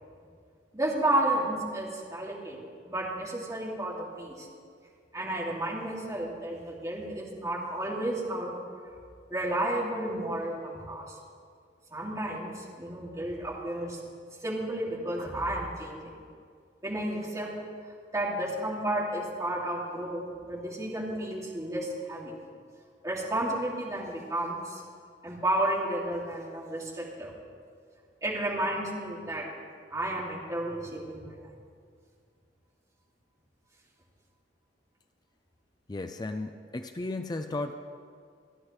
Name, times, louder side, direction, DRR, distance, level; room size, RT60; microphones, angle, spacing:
voice 1, 0.7-2.6 2.9-4.5 5.1-8.6 9.3-11.2 11.9-14.0 14.4-16.2 16.8-17.5 18.1-22.3 23.0-24.8 25.2-27.3 28.2-29.5 29.9-31.5, right 1 dB, 20° right, -4 dB, 2.4 m, -32 dB
voice 2, 35.9-37.7, left 2 dB, 25° left, 7 dB, 0.4 m, -34 dB
28.0 x 10.0 x 3.2 m, 2.1 s
head